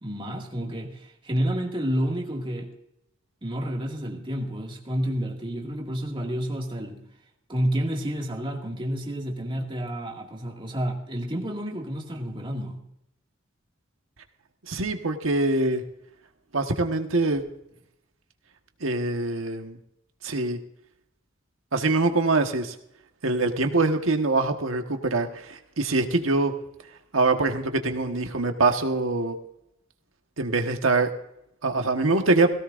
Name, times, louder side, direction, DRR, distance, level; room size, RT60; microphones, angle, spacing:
voice 1, 0.0-2.7 3.4-7.1 7.5-12.8, equal, 25° right, 0 dB, 2.1 m, -30 dB
voice 2, 14.7-15.8 16.5-17.4 18.8-19.8 20.2-20.6 21.7-22.7 23.2-26.5 27.1-29.4 30.4-31.1 31.6-32.5, right 3 dB, 85° right, 5 dB, 1.4 m, -24 dB
17.5 x 17.0 x 2.6 m, 0.79 s
head